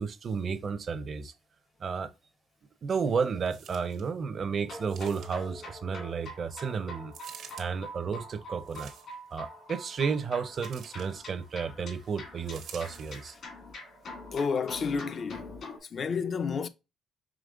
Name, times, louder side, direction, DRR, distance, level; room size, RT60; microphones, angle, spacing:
voice 1, 0.0-1.3 1.8-2.1 2.8-7.1 7.6-8.9 9.3-13.3, right 5 dB, 50° right, 0.6 m, -32 dB
sound 1, 3.5-4.1 4.9-5.6 7.1-7.7 8.6-9.3 10.6-11.1 12.5-13.3 14.0-14.1, right 7 dB, 80° right, 0.8 m, -49 dB
sound 2, 4.6-15.8, left 1 dB, 65° left, 1.9 m, -45 dB
voice 2, 14.3-15.5 15.9-16.7, left 5 dB, 50° left, 0.4 m, -30 dB
5.0 x 3.1 x 2.4 m
cardioid pair, 90°, 0 cm